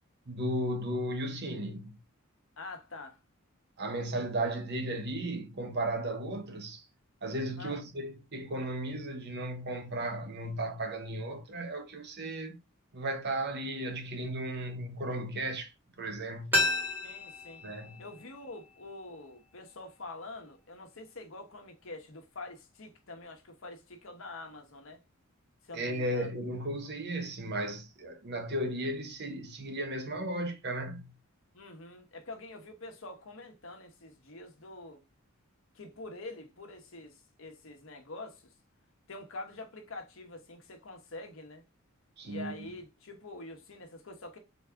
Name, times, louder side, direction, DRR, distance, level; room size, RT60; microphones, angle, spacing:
voice 1, 0.3-2.0 3.8-6.9 7.2-12.6 12.9-15.7 16.0-16.6 17.6-18.0 25.7-31.1 42.2-42.5, right 1 dB, 50° right, 1.0 m, -35 dB
voice 2, 2.6-3.2 7.6-7.8 17.0-17.6 18.0-25.0 25.6-26.3 31.5-35.0 35.7-38.5 39.1-41.6 42.2-44.4, left 2 dB, 65° left, 1.1 m, -46 dB
sound 1, 16.5-19.3 19.6-19.7, left 2 dB, 10° right, 1.7 m, -33 dB
4.0 x 3.7 x 3.4 m
head